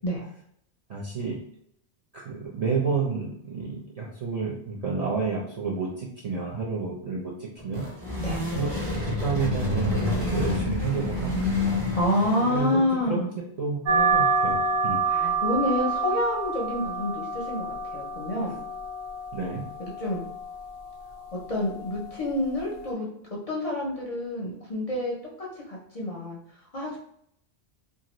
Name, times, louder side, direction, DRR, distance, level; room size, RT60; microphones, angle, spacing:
voice 1, 0.9-1.4 2.1-7.9 8.5-11.5 12.5-13.2 13.6-15.0 19.3-19.7, right 5 dB, 50° right, -4 dB, 0.4 m, -30 dB
sound 1, 7.6-12.9, left 2 dB, 30° right, 1.0 m, -28 dB
voice 2, 11.9-13.3 15.0-18.6 20.0-20.2 21.5-23.1 23.5-26.4 26.7-27.0, left 1 dB, 45° left, -3 dB, 0.5 m, -28 dB
sound 2, 13.9-22.9, right 3 dB, 80° right, 0.8 m, -28 dB
2.6 x 2.4 x 3.0 m, 0.70 s
omnidirectional pair, 1.1 m